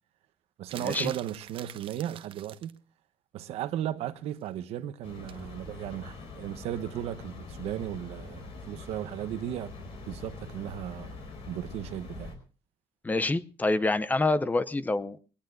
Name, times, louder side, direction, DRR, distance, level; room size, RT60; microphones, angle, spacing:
voice 1, 0.6-2.8 3.3-9.7 10.1-11.2 11.4-12.4, right 11 dB, 85° right, 0.9 m, -36 dB
sound 1, 0.7-2.8 5.3-5.5, right 10 dB, 60° right, 0.7 m, -45 dB
sound 2, 5.0-12.4, left 3 dB, 65° left, 4.7 m, -44 dB
voice 2, 13.0-15.2, left 2 dB, 15° left, 0.6 m, -27 dB
23.0 x 18.0 x 2.6 m
cardioid pair, 130°, 10 cm